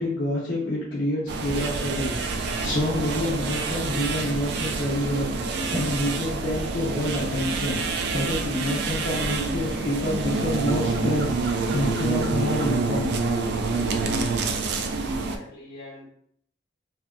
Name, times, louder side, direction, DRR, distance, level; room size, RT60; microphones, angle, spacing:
voice 1, 0.0-7.8 8.1-13.2, left 1 dB, 70° left, -6 dB, 0.7 m, -28 dB
sound 1, 1.3-15.4, right 3 dB, 65° right, 0.3 m, -27 dB
voice 2, 15.0-16.1, left 2 dB, 45° left, -6 dB, 1.0 m, -44 dB
2.7 x 2.4 x 2.2 m, 0.65 s
head